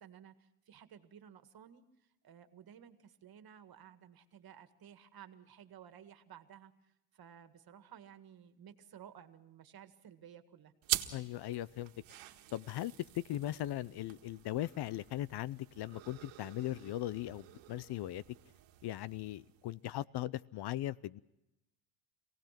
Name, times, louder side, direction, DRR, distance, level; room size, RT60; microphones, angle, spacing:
voice 1, 0.0-10.7, right 9 dB, 50° right, 1.9 m, -56 dB
sound 1, 10.8-19.8, right 14 dB, 75° right, 1.8 m, -45 dB
voice 2, 11.1-11.9 12.5-18.2 18.8-21.2, left 14 dB, 55° left, 0.7 m, -39 dB
26.5 x 18.0 x 5.9 m
cardioid pair, 105°, 47 cm